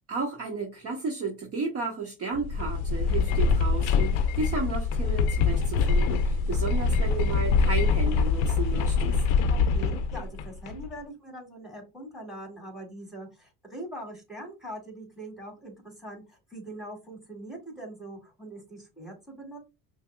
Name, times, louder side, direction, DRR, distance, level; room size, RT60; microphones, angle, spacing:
voice 1, 0.1-9.2, right 4 dB, 35° right, 0.8 m, -33 dB
sound 1, 2.4-10.9, left 4 dB, 65° left, 0.6 m, -24 dB
voice 2, 9.5-19.6, right 1 dB, ahead, 2.0 m, -42 dB
5.5 x 2.0 x 2.2 m
supercardioid pair, 100°, 43 cm